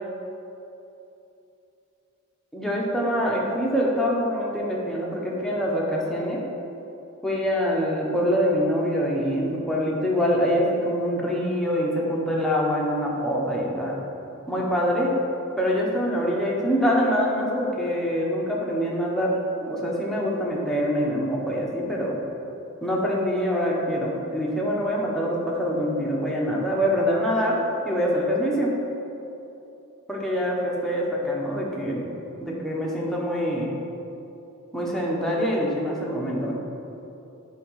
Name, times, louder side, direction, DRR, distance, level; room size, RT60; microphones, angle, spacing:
voice 1, 2.5-6.4 7.2-14.0 14.5-15.1 15.6-19.3 19.6-22.2 22.8-27.6 27.8-28.7 30.1-32.1 32.4-33.7 34.7-36.5, equal, ahead, -4 dB, 1.0 m, -25 dB
9.6 x 3.6 x 4.8 m, 2.9 s
head